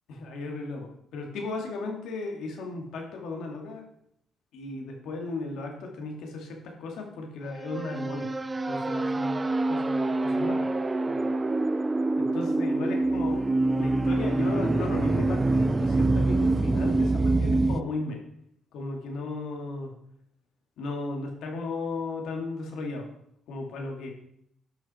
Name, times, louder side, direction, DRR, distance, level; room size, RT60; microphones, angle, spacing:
voice 1, 0.1-3.9 4.5-8.3 8.6-10.7 11.1-11.3 12.2-13.4 13.7-18.2 18.7-19.9 20.8-23.1 23.5-24.1, left 3 dB, 80° left, 2 dB, 2.2 m, -35 dB
sound 1, 7.5-17.8, right 2 dB, 25° right, 0.4 m, -25 dB
10.5 x 6.0 x 4.3 m, 0.73 s
cardioid pair, 90°, 0 cm